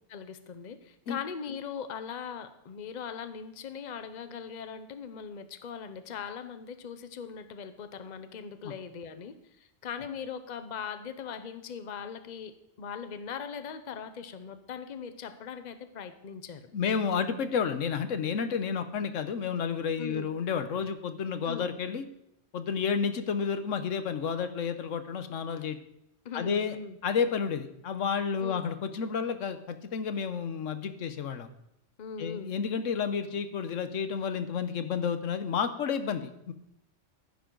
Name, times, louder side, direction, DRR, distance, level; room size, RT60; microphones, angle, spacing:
voice 1, 0.1-16.7 20.0-20.3 21.4-21.7 26.2-27.0 28.4-28.7 32.0-32.5, left 7 dB, 40° left, 10 dB, 0.8 m, -40 dB
voice 2, 16.7-22.0 22.5-25.8 26.3-26.8 27.0-31.5 32.2-36.5, left 6 dB, 85° left, 10 dB, 1.2 m, -31 dB
14.5 x 10.5 x 3.9 m, 0.80 s
omnidirectional pair, 1.3 m